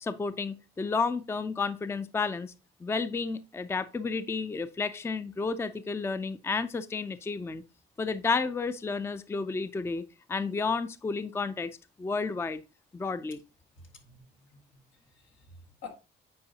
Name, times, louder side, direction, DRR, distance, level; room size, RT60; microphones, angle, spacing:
voice 1, 0.0-2.5 2.8-7.6 8.0-10.0 10.3-11.7 12.0-12.6 12.9-13.4, left 4 dB, 15° left, 0.4 m, -31 dB
voice 2, 13.8-15.9, left 5 dB, 80° left, 1.6 m, -50 dB
8.6 x 4.6 x 2.8 m
cardioid pair, 90°, 20 cm